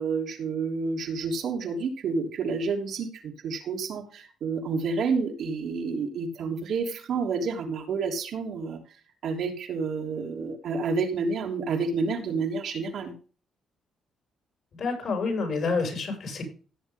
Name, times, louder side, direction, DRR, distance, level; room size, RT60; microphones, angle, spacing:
voice 1, 0.0-8.8 9.2-13.1, right 4 dB, 70° right, 1 dB, 3.2 m, -29 dB
voice 2, 14.8-16.4, left 4 dB, 60° left, 4 dB, 6.0 m, -28 dB
16.5 x 7.5 x 3.6 m, 0.36 s
cardioid pair, 90°, 0 cm